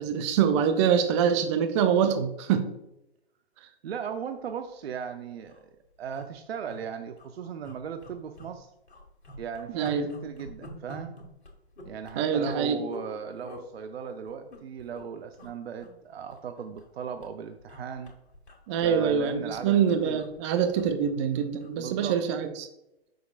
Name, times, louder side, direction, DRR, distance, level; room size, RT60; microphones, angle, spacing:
voice 1, 0.0-2.7 9.7-10.1 12.2-12.8 18.7-22.7, right 7 dB, 30° right, 8 dB, 0.5 m, -25 dB
voice 2, 3.8-5.7 6.0-8.7 9.4-11.2 11.8-18.1 18.8-19.8 20.0-20.2 21.8-22.2, right 7 dB, 70° right, 8 dB, 0.6 m, -37 dB
sound 1, 4.7-4.8 5.1-5.2 5.4-5.6 6.1-6.8 7.1-7.3 7.6-8.6 8.9-13.1 13.4-13.7 14.3-15.0 15.3-15.5 15.8-16.9 17.2-21.8 22.1-22.3, equal, 80° left, 1.7 m, -47 dB
6.5 x 6.4 x 2.4 m, 0.87 s
hypercardioid pair, 125°, 32 cm